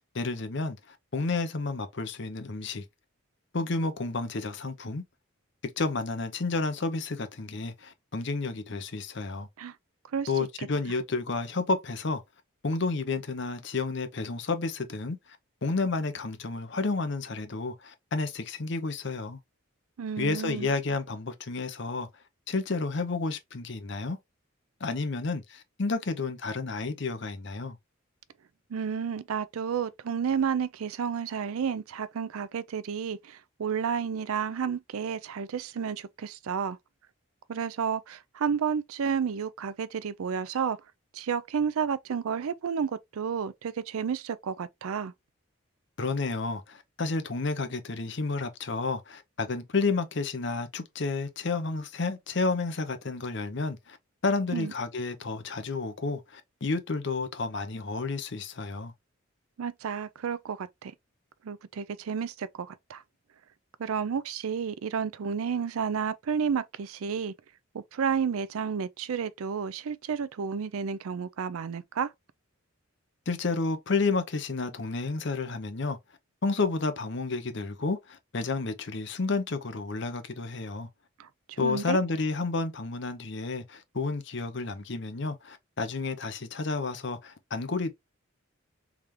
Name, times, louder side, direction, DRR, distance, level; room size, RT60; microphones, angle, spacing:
voice 1, 0.1-2.8 3.5-5.0 5.6-9.5 10.3-12.2 12.6-19.4 20.2-22.1 22.5-24.2 24.8-27.8 46.0-54.0 54.2-58.9 73.3-76.0 76.4-80.9 81.6-87.9, left 3 dB, 55° left, 0.7 m, -31 dB
voice 2, 20.0-20.7 28.7-36.8 37.5-40.8 41.1-45.1 54.5-54.7 59.6-60.9 61.4-63.0 63.8-67.3 67.7-72.1 81.2-82.0, right 7 dB, 80° right, 0.4 m, -31 dB
3.6 x 3.4 x 3.0 m
head